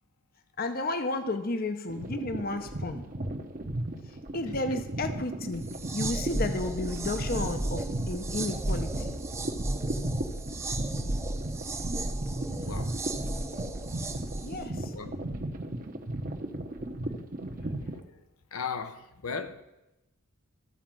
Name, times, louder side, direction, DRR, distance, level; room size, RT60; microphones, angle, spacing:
voice 1, 0.6-3.0 4.1-5.6 5.9-9.2 14.4-14.9, left 2 dB, 40° left, 0.7 m, -33 dB
sound 1, 1.9-18.0, right 1 dB, 40° right, 0.9 m, -36 dB
sound 2, 5.6-14.7, right 2 dB, 15° right, 0.5 m, -34 dB
voice 2, 17.5-18.0 18.5-19.6, left 5 dB, 80° left, 0.8 m, -37 dB
13.0 x 4.9 x 7.5 m
head